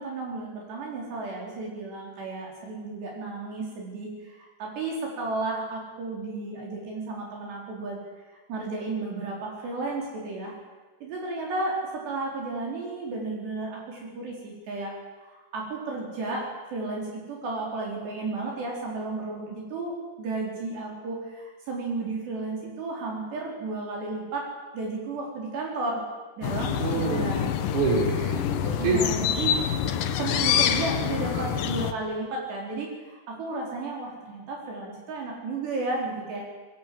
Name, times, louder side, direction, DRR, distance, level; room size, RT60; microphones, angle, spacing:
voice 1, 0.0-8.0 8.3-10.6 11.0-14.9 15.2-24.5 24.7-26.0 26.4-27.5 28.8-29.5 30.2-36.5, right 3 dB, 60° right, -1 dB, 6.2 m, -33 dB
sound 1, 26.4-31.9, left 9 dB, 75° left, 2.0 m, -26 dB
voice 2, 26.8-29.0 31.3-31.5, right 4 dB, 40° right, 0 dB, 6.0 m, -27 dB
28.0 x 21.5 x 7.8 m, 1.2 s
omnidirectional pair, 5.6 m